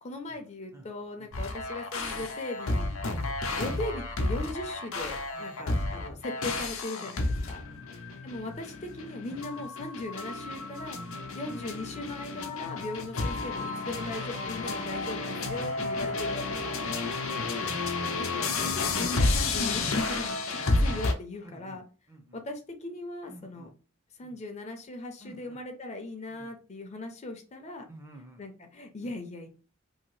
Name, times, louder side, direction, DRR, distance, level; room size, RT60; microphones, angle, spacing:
voice 1, 0.0-2.9 3.5-7.6 8.2-11.0 11.3-16.8 17.1-17.2 18.2-21.8 22.3-23.7 24.2-27.9 28.4-29.5, left 2 dB, 35° left, 4 dB, 0.5 m, -39 dB
sound 1, 1.3-21.1, left 3 dB, 85° left, 0.6 m, -31 dB
voice 2, 3.0-3.3 4.4-4.5 5.3-5.8 7.0-8.2 9.2-9.6 10.9-11.3 12.4-12.7 13.9-14.1 14.6-15.0 15.6-16.3 17.5-17.9 20.6-20.7 21.4-21.8 22.1-22.4 23.3-23.7 24.2-24.4 25.2-25.6 26.3-26.6 27.9-28.5 29.0-29.1, right 1 dB, 15° right, 4 dB, 0.6 m, -52 dB
2.8 x 2.7 x 3.0 m, 0.36 s
head